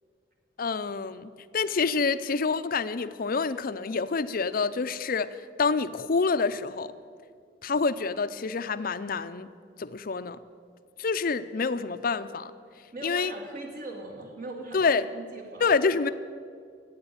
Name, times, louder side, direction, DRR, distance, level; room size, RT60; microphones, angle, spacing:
voice 1, 0.6-5.3 5.6-6.9 7.6-9.5 9.8-10.4 11.0-12.5 13.0-13.3 14.7-15.1 15.6-16.1, left 4 dB, 50° left, 13 dB, 0.6 m, -27 dB
voice 2, 12.9-15.7, right 2 dB, 50° right, 0 dB, 1.9 m, -40 dB
14.0 x 8.9 x 8.9 m, 2.2 s
head